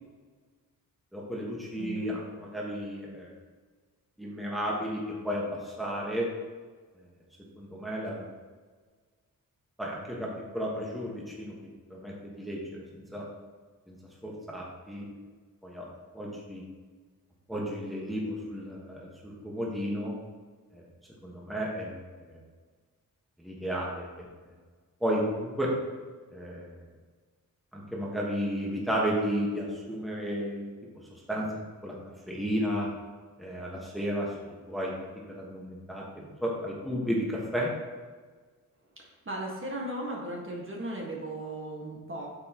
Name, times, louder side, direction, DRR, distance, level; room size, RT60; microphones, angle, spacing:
voice 1, 1.1-3.3 4.2-6.3 7.6-8.3 9.8-11.5 11.9-12.8 13.1-13.2 13.9-14.0 14.2-15.1 15.6-15.9 16.1-16.6 17.5-20.1 20.7-20.8 21.2-22.4 23.4-24.3 25.0-25.7 26.3-26.7 27.7-30.7 31.3-31.5 31.8-31.9 32.3-32.9 33.4-34.3 34.7-34.9 35.3-37.7, equal, ahead, -4 dB, 1.4 m, -33 dB
voice 2, 1.8-2.2 39.0-42.3, right 1 dB, 35° right, -2 dB, 1.6 m, -37 dB
8.6 x 6.9 x 3.0 m, 1.4 s
wide cardioid pair, 125°, 35 cm